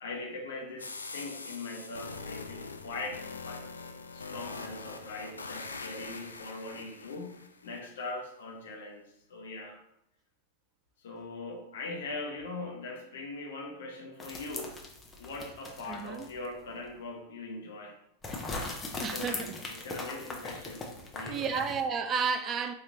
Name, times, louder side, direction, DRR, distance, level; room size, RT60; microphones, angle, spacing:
voice 1, 0.0-9.0 9.3-9.8 11.0-14.8 15.2-18.0 18.9-21.7, left 3 dB, 60° left, 0.9 m, -41 dB
sound 1, 0.8-7.8, left 4 dB, 75° left, 0.3 m, -43 dB
sound 2, 14.2-16.5 16.8-16.9 18.2-21.9, left 3 dB, 20° left, 0.7 m, -40 dB
voice 2, 15.9-16.3 19.0-19.5 20.1-20.2 21.3-22.7, right 6 dB, 25° right, 0.3 m, -32 dB
4.2 x 2.9 x 3.4 m
figure-of-eight pair, 90°, 0 cm